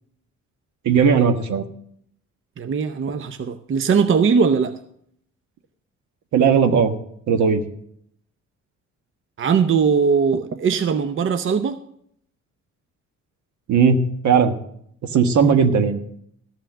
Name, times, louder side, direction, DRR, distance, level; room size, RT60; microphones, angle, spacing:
voice 1, 0.8-1.6 6.3-6.9 7.3-7.6 13.7-14.5 15.1-16.0, right 6 dB, 70° right, 7 dB, 1.4 m, -17 dB
voice 2, 2.6-4.8 9.4-11.8 15.4-15.6, right 6 dB, 45° right, 10 dB, 0.7 m, -20 dB
14.0 x 5.7 x 7.4 m, 0.70 s
cardioid pair, 90°, 30 cm